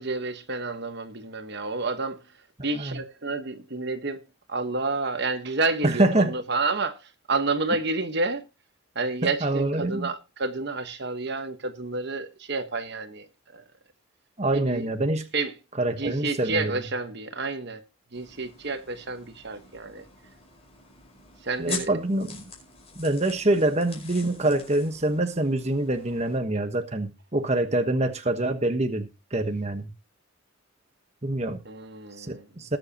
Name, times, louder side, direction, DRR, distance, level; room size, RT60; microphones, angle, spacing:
voice 1, 0.0-2.2 2.6-4.2 4.5-8.4 8.9-13.6 14.5-14.8 15.3-15.5 16.0-17.8 18.1-20.0 21.4-21.9 31.6-32.5, right 3 dB, 50° right, 1.3 m, -30 dB
voice 2, 5.8-6.3 9.2-10.1 14.4-15.2 15.8-16.7 21.6-22.4 22.9-29.9 31.2-31.6 32.2-32.8, right 2 dB, 30° right, 1.2 m, -25 dB
sound 1, 18.1-26.4, left 5 dB, 30° left, 5.2 m, -44 dB
20.5 x 7.7 x 2.9 m
head